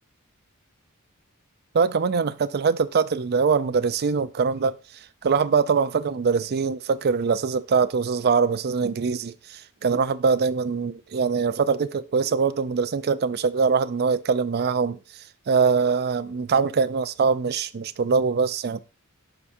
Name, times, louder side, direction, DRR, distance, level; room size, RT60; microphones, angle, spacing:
voice 1, 1.7-4.8 5.2-15.0 15.5-18.8, right 5 dB, 45° right, 0.4 m, -23 dB
11.0 x 4.8 x 2.6 m
head